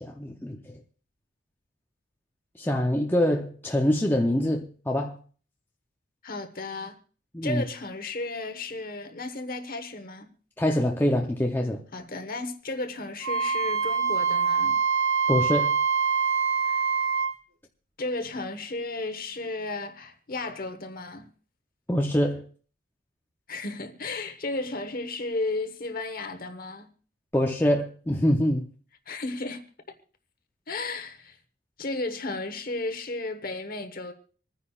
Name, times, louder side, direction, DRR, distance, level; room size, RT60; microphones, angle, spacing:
voice 1, 0.0-0.7 2.6-5.2 7.3-7.6 10.6-11.8 15.3-15.7 21.9-22.4 27.3-28.7, left 1 dB, 10° left, 0.6 m, -25 dB
voice 2, 6.2-7.0 7.4-10.3 11.9-14.8 16.6-16.8 18.0-21.3 23.5-26.9 29.1-29.6 30.7-31.4 31.8-34.1, left 2 dB, 45° left, 1.2 m, -34 dB
Wind instrument woodwind instrument, 13.2-17.3, right 6 dB, 85° right, 1.3 m, -24 dB
26.5 x 9.8 x 2.4 m
head